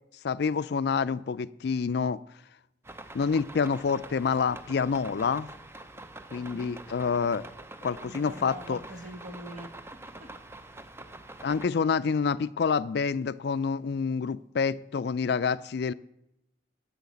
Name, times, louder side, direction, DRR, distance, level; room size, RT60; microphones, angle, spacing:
voice 1, 0.2-2.2 3.1-5.5 6.3-7.4 7.8-8.8 11.4-15.9, left 5 dB, 55° left, 0.3 m, -27 dB
sound 1, 2.8-11.7, right 2 dB, 10° right, 0.5 m, -45 dB
voice 2, 6.3-6.8 8.0-10.3, right 1 dB, 40° right, 1.1 m, -45 dB
10.5 x 6.4 x 8.4 m
head